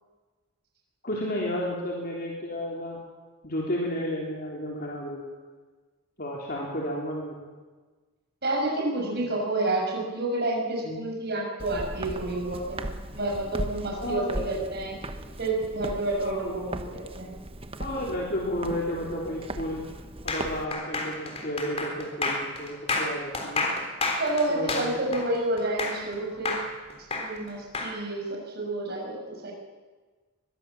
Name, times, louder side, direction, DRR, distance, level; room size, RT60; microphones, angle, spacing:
voice 1, 1.0-3.0 3.4-5.3 6.2-7.5 9.1-9.3 10.8-11.0 14.0-14.5 16.2-16.6 17.8-19.8 20.2-23.6 24.5-25.2, equal, 40° left, -3 dB, 3.7 m, -32 dB
voice 2, 8.4-15.0 15.4-17.4 24.2-26.6 27.2-29.5, right 2 dB, 45° right, -1 dB, 6.5 m, -29 dB
Walk footsteps, 11.6-20.6, right 1 dB, 25° right, 1.2 m, -38 dB
sound 1, 20.3-26.1 26.5-27.9, left 3 dB, 25° left, 3.7 m, -30 dB
23.5 x 21.0 x 7.4 m, 1.4 s
head